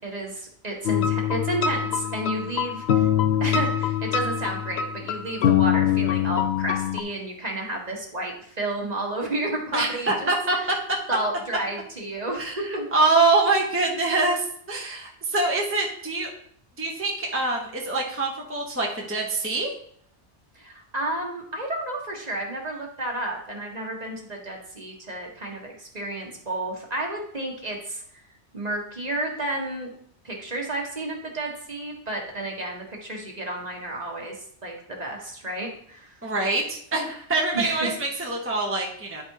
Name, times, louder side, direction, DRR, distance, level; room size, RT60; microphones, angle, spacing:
voice 1, 0.0-3.1 3.4-10.3 11.1-12.9 20.5-28.2 28.5-29.9 30.2-36.1 37.5-38.0, right 1 dB, 35° right, 0 dB, 1.5 m, -31 dB
sound 1, 0.9-7.0, left 9 dB, 70° left, 0.9 m, -24 dB
voice 2, 9.7-10.8 12.4-16.3 16.8-19.7 36.2-39.2, right 3 dB, 10° right, -1 dB, 1.0 m, -25 dB
10.0 x 4.2 x 4.7 m, 0.65 s
omnidirectional pair, 1.2 m